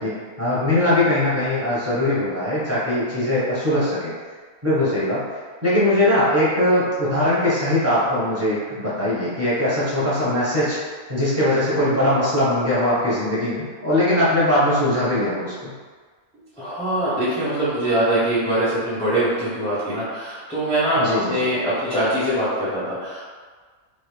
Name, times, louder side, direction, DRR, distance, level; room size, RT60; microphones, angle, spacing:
voice 1, 0.0-4.1 4.6-5.2 5.6-10.8 11.1-15.7 21.0-21.3, left 1 dB, 10° right, -10 dB, 1.0 m, -21 dB
voice 2, 16.6-23.3, right 1 dB, 5° left, -12 dB, 0.6 m, -23 dB
3.0 x 2.9 x 3.3 m, 1.5 s
omnidirectional pair, 1.4 m